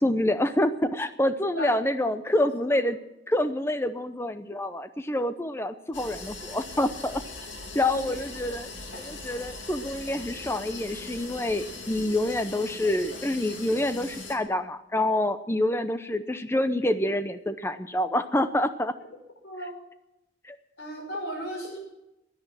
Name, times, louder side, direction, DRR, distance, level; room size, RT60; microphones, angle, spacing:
voice 1, 0.0-3.0 3.3-7.2 7.7-8.7 9.0-18.9 20.4-20.6, left 1 dB, 15° left, 11 dB, 0.6 m, -27 dB
voice 2, 2.3-2.8 7.9-8.1 19.0-19.1 19.4-19.8 20.8-21.8, equal, 65° left, 1 dB, 5.9 m, -36 dB
Wasser - Toilettenspülung, 5.9-14.3, left 3 dB, 90° left, 3.0 m, -40 dB
16.5 x 10.5 x 7.5 m, 0.90 s
head